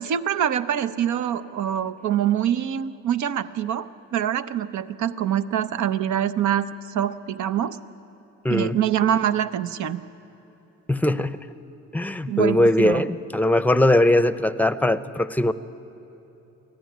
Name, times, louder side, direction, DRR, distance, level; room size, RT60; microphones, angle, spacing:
voice 1, 0.0-7.8 8.5-10.0 12.3-13.0, right 10 dB, 70° right, 12 dB, 0.8 m, -25 dB
voice 2, 8.4-8.8 10.9-11.4 11.9-15.5, left 1 dB, 5° left, 14 dB, 0.7 m, -20 dB
24.5 x 15.5 x 9.4 m, 3.0 s
cardioid pair, 90°, 30 cm